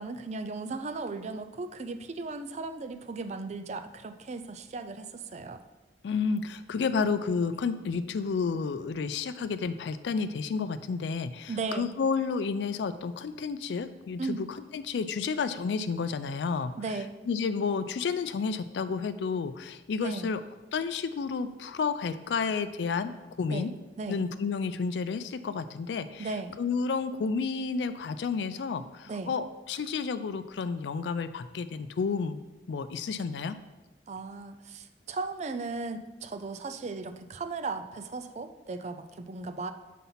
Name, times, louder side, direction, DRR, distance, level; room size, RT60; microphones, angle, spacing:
voice 1, 0.0-5.6 11.5-11.9 14.2-14.4 16.8-17.2 20.0-20.3 23.5-23.7 24.0-24.3 26.2-26.6 29.1-29.3 34.1-39.7, right 3 dB, 40° right, 10 dB, 0.4 m, -36 dB
voice 2, 6.0-14.4 14.7-16.7 17.3-20.4 20.7-23.1 23.4-23.7 24.1-26.3 26.6-32.4 32.7-33.6, left 5 dB, 80° left, 11 dB, 0.4 m, -31 dB
5.6 x 4.1 x 5.7 m, 1.1 s
head